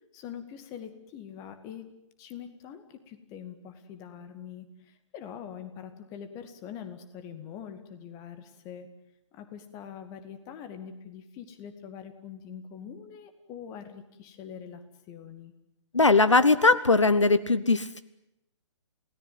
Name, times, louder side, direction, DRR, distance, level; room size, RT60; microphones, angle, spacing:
voice 1, 0.1-1.9 2.2-8.9 9.3-14.8 15.1-15.5, left 8 dB, 20° left, 9 dB, 2.2 m, -43 dB
voice 2, 15.9-18.0, left 3 dB, 75° left, 14 dB, 1.2 m, -20 dB
28.5 x 17.5 x 9.5 m, 0.87 s
figure-of-eight pair, 130°, 15 cm